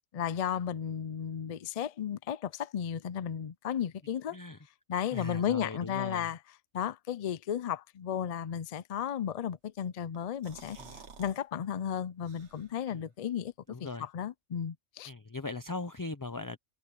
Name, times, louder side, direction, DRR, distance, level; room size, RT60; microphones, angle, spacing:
voice 1, 0.1-4.4 4.9-6.4 6.7-10.8 11.2-13.5 13.8-15.1, left 9 dB, 60° left, 0.3 m, -34 dB
voice 2, 5.1-6.3 10.7-10.9 12.9-13.0 13.7-14.1 15.1-16.6, left 3 dB, 20° left, 0.6 m, -39 dB
sound 1, 10.1-11.4 11.7-11.8 12.2-12.9, right 5 dB, 65° right, 1.7 m, -51 dB
omnidirectional pair, 1.3 m